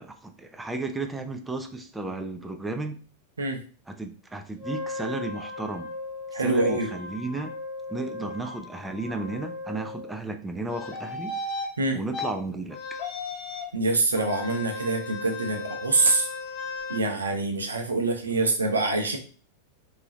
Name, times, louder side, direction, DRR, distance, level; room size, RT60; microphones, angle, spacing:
voice 1, 0.0-3.0 3.9-5.9 6.3-7.5 7.9-11.3 11.9-12.8, right 2 dB, 10° right, 6 dB, 0.5 m, -33 dB
Wind instrument woodwind instrument, 4.6-10.2, left 3 dB, 35° right, 1.6 m, -38 dB
voice 2, 6.3-6.9 11.8-12.0 13.7-16.3 16.9-19.2, right 2 dB, 80° right, 3 dB, 0.7 m, -25 dB
sound 1, 10.7-11.7 12.1-12.3 12.7-13.7 14.2-17.0, left 3 dB, 35° left, 1.0 m, -35 dB
3.7 x 2.8 x 2.9 m, 0.40 s
figure-of-eight pair, 95°, 0 cm